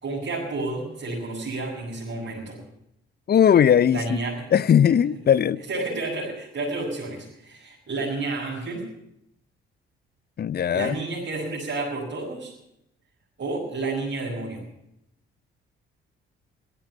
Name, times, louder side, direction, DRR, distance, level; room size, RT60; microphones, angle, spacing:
voice 1, 0.0-2.6 3.9-4.5 5.7-8.8 10.7-12.5 13.4-14.7, right 2 dB, 40° right, 5.2 m, -30 dB
voice 2, 3.3-4.2 4.5-5.6 10.4-10.9, left 9 dB, 35° left, 0.6 m, -19 dB
16.0 x 13.0 x 6.0 m
figure-of-eight pair, 45°, 29 cm